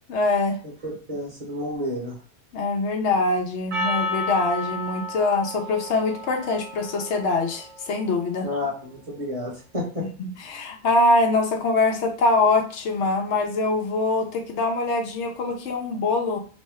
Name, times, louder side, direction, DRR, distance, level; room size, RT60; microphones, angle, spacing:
voice 1, 0.1-0.6 2.5-8.5 10.2-16.4, left 2 dB, 75° left, 3 dB, 0.9 m, -23 dB
voice 2, 0.8-2.2 8.4-10.0, left 1 dB, 35° right, -3 dB, 1.0 m, -30 dB
Percussion, 3.7-8.3, left 2 dB, 65° right, 1.1 m, -32 dB
3.0 x 2.1 x 3.4 m, 0.39 s
omnidirectional pair, 1.2 m